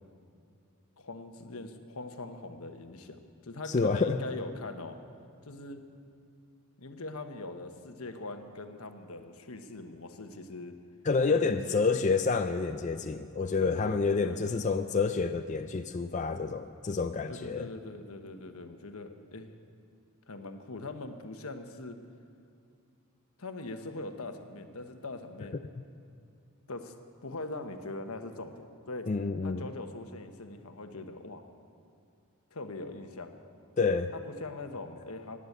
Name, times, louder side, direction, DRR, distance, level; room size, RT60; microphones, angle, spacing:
voice 1, 1.0-5.0 5.4-5.8 6.8-10.7 11.3-12.0 13.6-14.8 17.3-19.5 20.3-22.0 23.4-25.7 26.7-27.0 27.2-29.1 29.4-31.4 32.5-33.3 34.1-35.4, left 2 dB, 80° left, 6 dB, 1.2 m, -42 dB
voice 2, 3.7-4.2 11.0-17.7 25.8-25.9 29.1-29.6 33.8-34.1, left 4 dB, 35° left, 7 dB, 0.4 m, -28 dB
17.0 x 10.0 x 8.0 m, 2.4 s
head